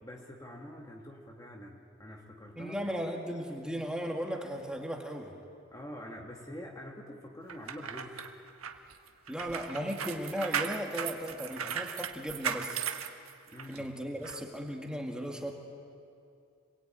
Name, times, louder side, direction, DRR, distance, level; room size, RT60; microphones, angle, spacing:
voice 1, 0.0-2.8 5.7-8.2 13.5-13.9, equal, 15° left, 0 dB, 1.8 m, -46 dB
voice 2, 2.6-5.4 9.3-12.8 13.7-15.5, equal, 5° right, 1 dB, 2.1 m, -36 dB
sound 1, 7.5-13.8 14.2-14.4, right 7 dB, 90° right, 1.5 m, -37 dB
28.0 x 21.5 x 9.0 m, 2.4 s
head